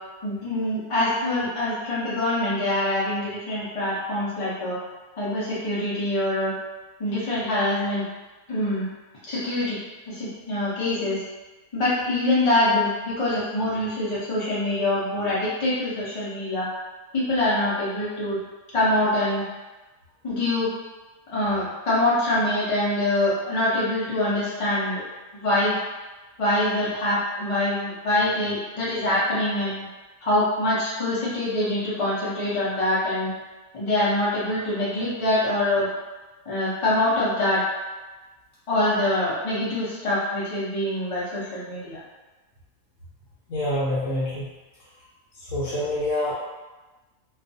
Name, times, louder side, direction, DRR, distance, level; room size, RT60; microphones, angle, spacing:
voice 1, 0.2-4.8 5.2-6.5 7.0-8.0 8.5-8.9 9.3-9.8 10.1-11.2 11.7-16.7 17.1-18.4 18.7-19.4 20.2-20.7 21.3-25.0 25.4-25.8 26.4-29.8 30.2-33.3 33.7-35.9 36.5-37.6 38.7-42.0, left 1 dB, 45° left, -8 dB, 0.4 m, -24 dB
voice 2, 43.5-44.5 45.4-46.3, left 1 dB, 70° left, -9 dB, 0.9 m, -26 dB
2.4 x 2.3 x 2.5 m, 1.2 s
omnidirectional pair, 1.5 m